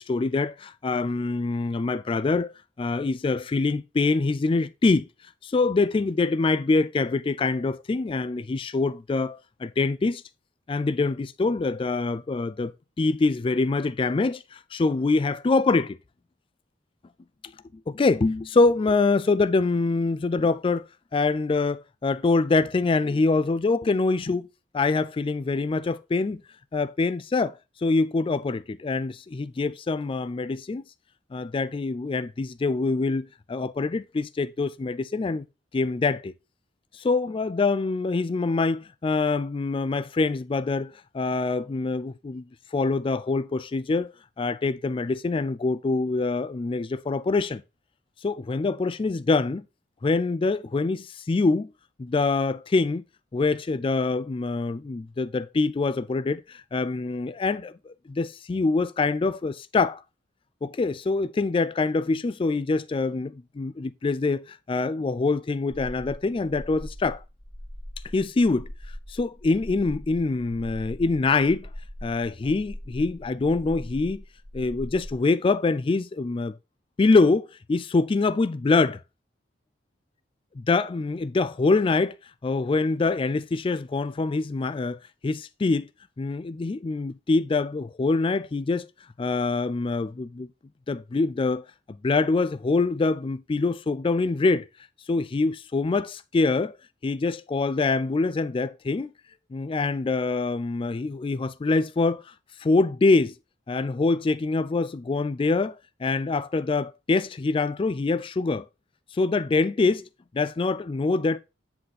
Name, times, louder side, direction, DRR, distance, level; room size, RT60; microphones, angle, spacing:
voice 1, 0.0-5.1 5.4-10.2 10.7-12.7 13.0-16.0 17.9-20.8 21.1-24.5 24.7-26.4 26.7-30.8 31.3-35.5 35.7-36.3 36.9-42.4 42.7-47.6 48.2-49.7 50.0-51.7 52.0-53.0 53.3-60.0 60.6-67.2 68.1-68.7 69.1-71.7 72.0-74.2 74.5-76.6 77.0-79.0 80.7-82.1 82.4-85.9 86.2-88.9 89.2-90.5 90.9-94.7 95.1-96.7 97.0-99.1 99.5-102.2 102.6-103.3 103.7-108.7 109.1-110.1 110.3-111.4, left 3 dB, 30° left, 0.3 m, -25 dB
sound 1, 65.7-75.1, left 1 dB, 10° left, 0.9 m, -41 dB
7.7 x 4.2 x 4.1 m
head